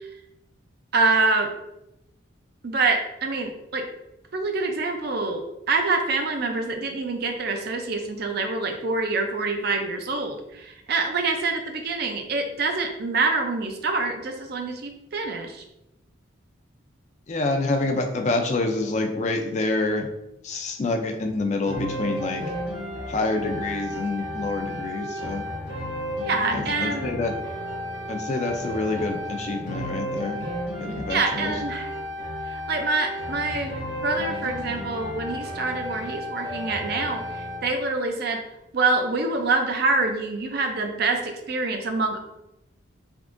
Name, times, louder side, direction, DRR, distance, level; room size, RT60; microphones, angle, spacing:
voice 1, 0.9-1.5 2.6-3.9 4.3-15.6 26.2-27.1 31.1-31.9 32.5-37.2 37.6-38.4 38.7-42.2, right 3 dB, 50° right, 4 dB, 0.4 m, -26 dB
voice 2, 17.3-20.1 20.4-22.5 23.1-25.4 26.5-27.3 28.1-30.4 30.8-31.6, left 2 dB, 35° left, 4 dB, 0.4 m, -27 dB
Ambient Tune, 21.7-37.7, equal, 65° right, 1.4 m, -33 dB
3.5 x 3.5 x 2.5 m, 0.88 s
head